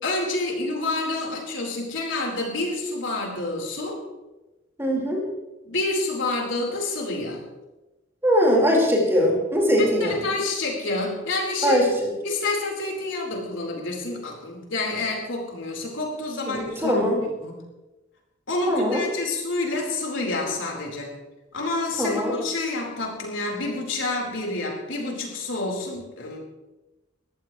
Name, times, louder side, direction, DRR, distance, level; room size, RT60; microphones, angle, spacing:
voice 1, 0.0-4.0 5.7-7.4 9.8-11.8 12.2-17.0 17.4-17.6 18.5-21.1 21.5-26.4, left 2 dB, 75° left, 0 dB, 4.4 m, -28 dB
voice 2, 4.8-5.2 8.2-10.3 11.6-12.1 16.4-17.2 18.7-19.0 22.0-22.3, equal, 15° right, -2 dB, 4.6 m, -21 dB
22.5 x 15.0 x 3.3 m, 1.0 s
head